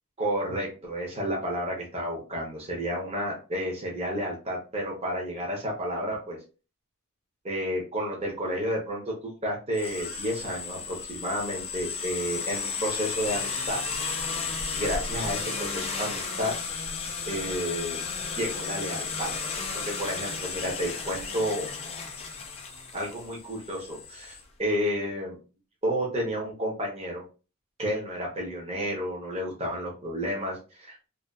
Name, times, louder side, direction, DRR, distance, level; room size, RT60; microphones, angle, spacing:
voice 1, 0.2-6.4 7.4-13.8 14.8-16.5 17.3-18.0 18.4-19.3 19.8-21.7 22.9-25.4 25.8-27.2 27.8-31.0, equal, 30° right, -2 dB, 0.7 m, -31 dB
sound 1, 9.7-24.4, left 5 dB, 25° left, 0.3 m, -34 dB
2.5 x 2.4 x 2.2 m, 0.34 s
head